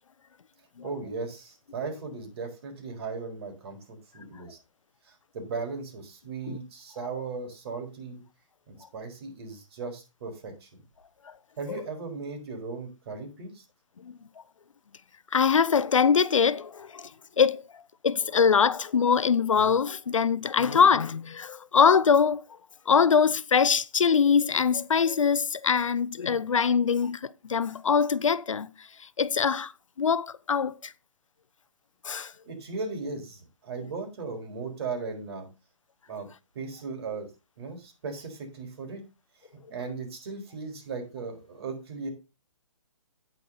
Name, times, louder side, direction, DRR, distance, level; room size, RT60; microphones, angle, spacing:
voice 1, 0.8-4.6 5.3-8.2 8.7-10.8 11.6-13.6 32.5-35.5 36.1-36.3 36.5-37.3 37.6-39.0 39.7-42.1, right 4 dB, 50° right, 4.4 m, -37 dB
voice 2, 15.3-17.1 17.4-17.6 18.0-22.4 22.9-28.7 29.2-29.7 30.0-30.9 32.0-32.3, left 6 dB, 75° left, 0.7 m, -23 dB
9.3 x 9.1 x 4.1 m
figure-of-eight pair, 135°, 17 cm